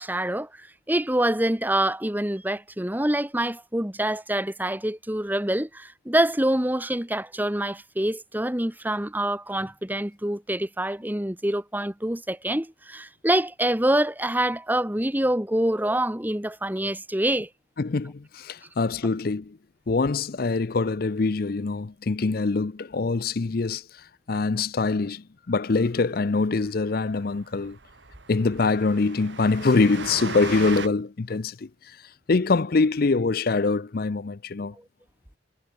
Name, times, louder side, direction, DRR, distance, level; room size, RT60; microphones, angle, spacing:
voice 1, 0.0-17.5, right 1 dB, 10° right, 1.4 m, -26 dB
voice 2, 17.8-19.6 19.9-27.8 28.3-34.7, left 3 dB, 50° left, 0.5 m, -24 dB
Train, 26.3-26.4 26.7-26.8 27.1-27.2 27.5-30.9, right 5 dB, 70° right, 1.5 m, -37 dB
head